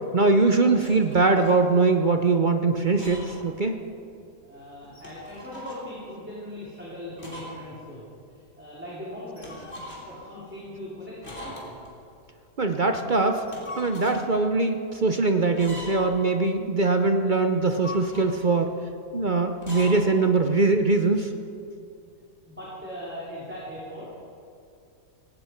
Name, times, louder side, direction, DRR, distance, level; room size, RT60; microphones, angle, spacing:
voice 1, 0.1-3.8 12.6-13.4 13.8-18.7 19.1-21.3, right 3 dB, 45° right, 6 dB, 0.6 m, -22 dB
sound 1, 0.8-1.6 2.8-3.5 3.8-3.9 4.8-5.9 7.2-7.6 7.9-8.0 9.4-10.2 11.2-11.9 13.3-14.2 15.5-16.2 17.5-18.5 19.5-20.0, left 1 dB, 40° left, 3.4 m, -41 dB
voice 2, 4.4-9.6 10.0-11.7 22.1-22.2 22.5-24.0, left 1 dB, 5° right, -8 dB, 3.2 m, -40 dB
18.0 x 18.0 x 4.5 m, 2.6 s
omnidirectional pair, 1.7 m